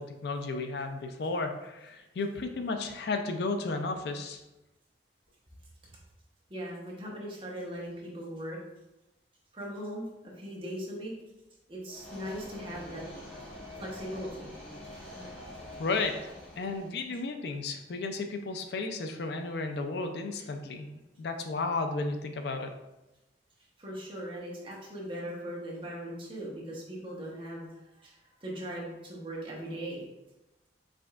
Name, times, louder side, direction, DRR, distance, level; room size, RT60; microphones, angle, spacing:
voice 1, 0.0-4.4 15.8-16.2 16.6-20.9 21.2-22.7, left 3 dB, 60° left, 6 dB, 0.4 m, -33 dB
voice 2, 6.5-8.6 9.5-11.1 11.7-13.0 13.8-14.5 23.8-27.7 28.0-28.1 28.4-30.1, equal, 30° right, -3 dB, 1.0 m, -39 dB
sound 1, 11.9-17.1, left 1 dB, 5° left, 1.0 m, -45 dB
4.9 x 3.4 x 2.4 m, 0.98 s
head